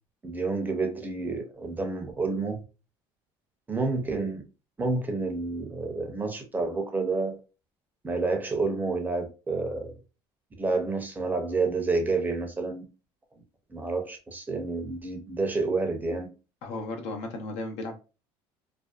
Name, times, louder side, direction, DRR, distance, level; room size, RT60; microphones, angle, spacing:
voice 1, 0.2-2.6 3.7-4.4 4.8-7.4 8.0-10.0 10.6-12.8 13.7-16.3, right 3 dB, 15° right, 0.5 m, -29 dB
voice 2, 16.6-18.0, left 2 dB, 75° left, 0.7 m, -35 dB
2.5 x 2.1 x 2.2 m
cardioid pair, 125°, 11 cm